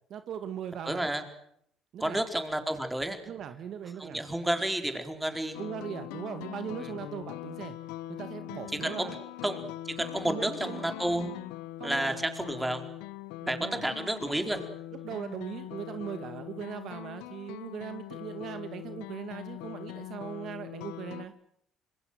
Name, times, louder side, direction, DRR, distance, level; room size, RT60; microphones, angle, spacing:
voice 1, 0.1-1.1 1.9-2.2 3.3-4.2 5.6-7.8 8.1-9.2 10.2-10.9 11.8-12.2 13.4-13.8 15.0-21.3, right 9 dB, 60° right, 10 dB, 2.0 m, -39 dB
voice 2, 0.8-1.2 2.0-3.2 4.0-5.6 8.8-9.1 9.4-9.6 10.0-11.3 11.8-12.8 13.5-14.7, right 1 dB, 10° right, 7 dB, 4.4 m, -31 dB
sound 1, 5.5-21.3, left 15 dB, 85° left, 1.0 m, -42 dB
26.5 x 21.5 x 7.7 m, 0.69 s
supercardioid pair, 80°, 0 cm